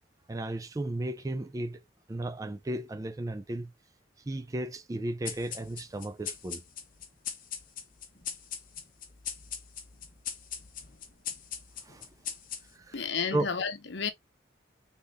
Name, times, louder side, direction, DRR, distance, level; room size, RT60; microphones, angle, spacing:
voice 1, 0.3-1.8 2.1-3.7 4.3-6.6 11.8-12.1 12.7-13.0 13.3-13.5, right 1 dB, 20° right, 0.3 m, -34 dB
sound 1, 5.2-13.0, left 8 dB, 45° left, 1.0 m, -41 dB
voice 2, 12.9-14.1, left 5 dB, 70° left, 0.9 m, -31 dB
3.9 x 3.7 x 3.4 m
head